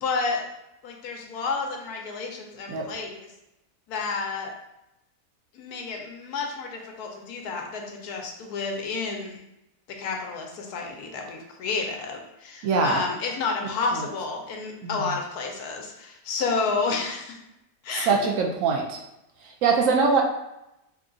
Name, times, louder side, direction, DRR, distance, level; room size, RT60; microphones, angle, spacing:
voice 1, 0.0-0.5 0.8-3.3 3.9-4.5 5.5-9.4 10.0-17.4 17.8-18.2, left 4 dB, 85° left, 2 dB, 1.2 m, -30 dB
voice 2, 12.6-13.0 13.9-14.0 14.8-15.1 18.1-19.0 19.6-20.2, right 4 dB, 70° right, 1 dB, 0.9 m, -22 dB
3.5 x 2.3 x 3.7 m, 0.87 s
omnidirectional pair, 1.6 m